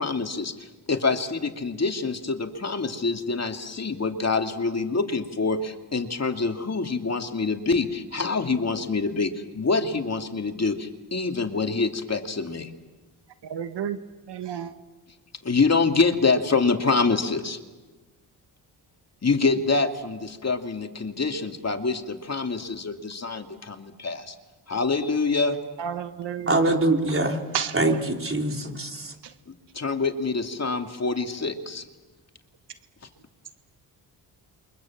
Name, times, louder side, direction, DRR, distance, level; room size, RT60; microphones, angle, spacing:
voice 1, 0.0-12.7 15.4-17.6 19.2-24.3 24.7-25.6 29.7-31.8, left 4 dB, 35° left, 2.6 m, -26 dB
voice 2, 13.5-14.0 14.3-14.7 25.8-26.6 27.5-27.7, right 8 dB, 70° right, 1.5 m, -30 dB
voice 3, 26.5-27.4 27.7-29.1, right 2 dB, 30° right, 4.1 m, -23 dB
28.5 x 24.0 x 7.4 m
cardioid pair, 60°, 43 cm